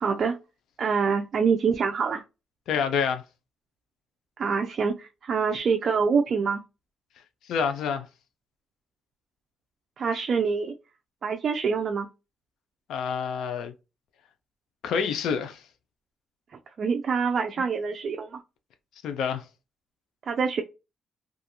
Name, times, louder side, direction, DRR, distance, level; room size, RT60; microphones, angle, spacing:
voice 1, 0.0-0.4 0.8-2.2 4.4-6.6 10.0-10.7 11.2-12.1 16.8-18.4 20.3-20.6, right 5 dB, 50° right, 0.4 m, -25 dB
voice 2, 2.7-3.2 7.5-8.1 12.9-13.7 14.8-15.6 19.0-19.4, left 6 dB, 80° left, 0.5 m, -27 dB
2.4 x 2.3 x 2.8 m
cardioid pair, 90°, 0 cm